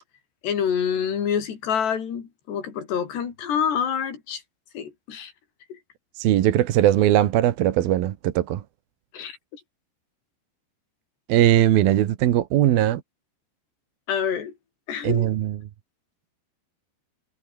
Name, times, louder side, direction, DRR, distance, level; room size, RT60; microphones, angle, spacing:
voice 1, 0.4-4.4 4.7-5.3 9.1-9.6 14.1-14.5 14.9-15.3, left 7 dB, 70° left, 5.9 m, -27 dB
voice 2, 6.2-8.6 11.3-13.0 15.0-15.6, right 13 dB, 65° right, 2.9 m, -20 dB
omnidirectional pair, 5.0 m